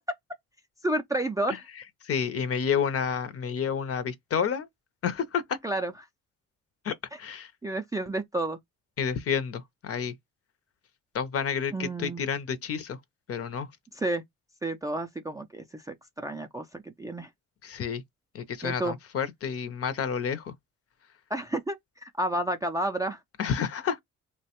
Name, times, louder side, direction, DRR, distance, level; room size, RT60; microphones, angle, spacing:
voice 1, 0.8-1.7 5.6-5.9 7.6-8.6 11.7-12.2 13.9-14.2 14.6-17.3 18.6-19.0 21.3-23.2, right 1 dB, 10° right, 0.3 m, -31 dB
voice 2, 2.0-4.7 5.0-5.6 6.8-7.5 9.0-10.1 11.1-13.0 13.3-13.7 17.6-18.0 18.3-20.5 23.4-24.0, left 7 dB, 50° left, 0.6 m, -30 dB
3.0 x 2.1 x 2.8 m
cardioid pair, 90°, 30 cm